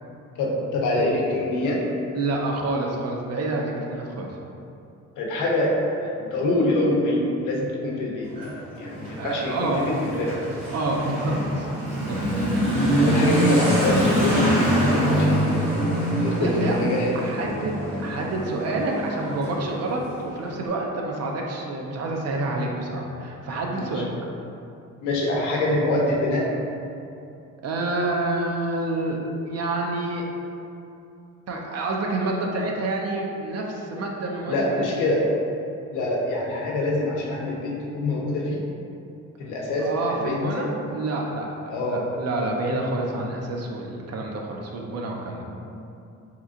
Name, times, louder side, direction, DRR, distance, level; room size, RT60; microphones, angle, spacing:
voice 1, 0.4-1.8 5.2-9.5 10.0-10.4 13.0-15.6 16.2-17.5 23.7-23.9 25.0-26.5 34.5-35.2 35.9-38.6 39.4-40.8 41.7-42.1 45.6-45.7, left 1 dB, 90° left, -2 dB, 0.7 m, -25 dB
voice 2, 2.1-4.3 9.2-9.8 10.7-11.7 11.9-12.2 16.4-16.8 17.1-24.1 27.6-29.2 29.5-30.2 31.5-34.9 39.8-45.5, right 2 dB, 55° right, 0 dB, 0.6 m, -28 dB
Motorcycle / Accelerating revving vroom, 8.2-20.5, equal, 90° right, 1.5 m, -24 dB
2.9 x 2.4 x 3.7 m, 2.7 s
cardioid pair, 90°, 30 cm